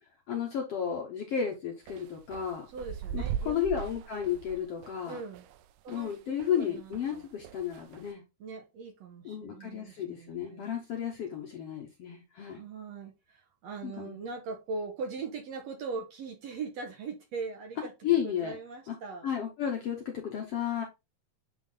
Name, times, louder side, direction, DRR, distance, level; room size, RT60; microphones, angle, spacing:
voice 1, 0.3-2.7 3.1-5.2 5.9-8.2 9.2-12.6 13.8-14.3 18.0-18.6 18.9-19.0 19.2-20.8, left 8 dB, 65° left, 1.6 m, -33 dB
sound 1, 1.9-6.6 6.9-8.1, right 9 dB, 85° right, 2.3 m, -39 dB
voice 2, 2.7-3.6 5.0-5.5 5.8-7.3 8.4-10.7 12.5-19.3, right 4 dB, 60° right, 2.0 m, -40 dB
9.1 x 3.7 x 3.8 m
omnidirectional pair, 4.0 m